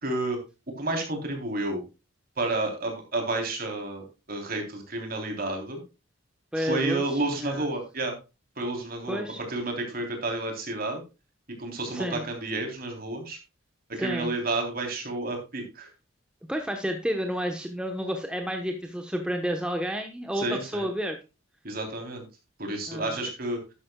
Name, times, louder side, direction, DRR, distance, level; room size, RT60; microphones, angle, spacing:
voice 1, 0.0-0.4 0.8-1.8 2.4-5.8 6.6-8.2 8.6-11.0 11.5-13.4 13.9-15.9 20.4-20.9 21.6-22.2 22.6-23.6, right 2 dB, 45° right, 3 dB, 3.4 m, -31 dB
voice 2, 6.5-7.0 7.4-7.7 9.1-9.4 11.9-12.3 14.0-14.3 16.5-21.2 22.9-23.1, equal, 5° right, 4 dB, 1.0 m, -30 dB
12.0 x 10.5 x 2.3 m, 0.28 s
head